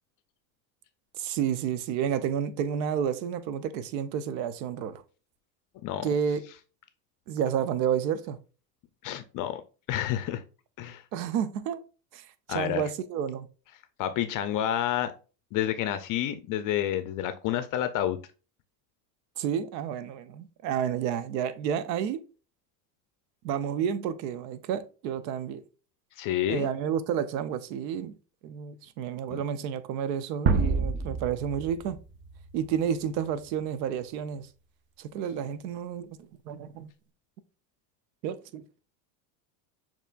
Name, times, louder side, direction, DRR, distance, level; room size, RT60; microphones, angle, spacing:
voice 1, 1.1-5.0 6.0-6.4 7.3-8.4 11.1-11.8 12.1-13.5 19.4-22.2 23.4-25.6 26.5-28.1 28.4-32.0 32.5-34.5 35.0-36.9 38.2-38.6, right 8 dB, 80° right, 0.7 m, -30 dB
voice 2, 9.0-9.6 9.9-10.4 10.8-11.0 12.5-12.8 14.0-15.1 15.5-18.2 26.2-26.7 29.3-29.4, left 11 dB, 40° left, 0.4 m, -29 dB
sound 1, 30.5-33.4, right 4 dB, 25° right, 0.4 m, -29 dB
6.6 x 3.0 x 2.3 m
supercardioid pair, 110°, 50 cm